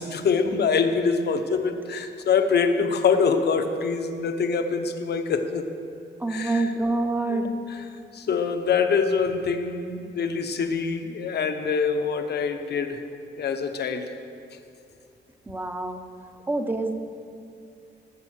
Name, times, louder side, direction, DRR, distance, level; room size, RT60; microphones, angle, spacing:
voice 1, 0.0-5.6 6.3-6.7 7.3-7.8 8.1-13.0 13.4-14.1, left 5 dB, 60° left, 7 dB, 1.0 m, -25 dB
voice 2, 6.2-7.5 15.5-16.0 16.5-16.9, right 2 dB, 10° right, 6 dB, 0.9 m, -26 dB
19.0 x 8.2 x 6.4 m, 2.6 s
wide cardioid pair, 170°, 20 cm